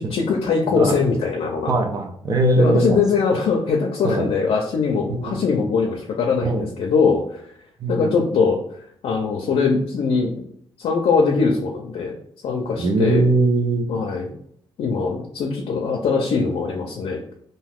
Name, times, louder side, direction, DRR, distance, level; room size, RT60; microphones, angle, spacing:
voice 1, 0.0-1.7 2.6-7.4 7.9-8.6 9.0-10.4 10.8-12.2 12.4-13.2 13.9-14.3 14.8-17.2, left 5 dB, 75° left, 0 dB, 0.5 m, -21 dB
voice 2, 1.7-3.0 4.0-4.3 5.1-5.4 6.4-6.7 7.8-8.1 12.8-13.9, right 2 dB, 40° right, 4 dB, 0.5 m, -20 dB
2.6 x 2.3 x 3.4 m, 0.67 s
cardioid pair, 115°, 10 cm